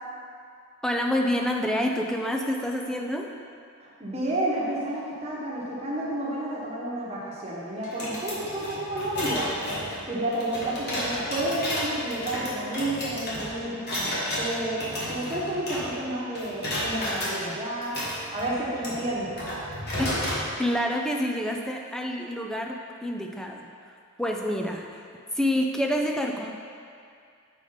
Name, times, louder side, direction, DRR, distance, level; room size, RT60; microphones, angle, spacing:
voice 1, 0.8-3.3 20.0-20.1 20.6-23.7 24.2-25.0 25.3-26.5, equal, 5° left, 1 dB, 0.3 m, -27 dB
voice 2, 3.8-9.6 10.1-18.0 18.3-19.5, right 1 dB, 30° right, -6 dB, 1.1 m, -31 dB
sound 1, 7.8-16.1 16.3-17.3 17.8-20.4, equal, 50° left, 1.4 m, -32 dB
6.6 x 4.9 x 3.9 m, 2.3 s
head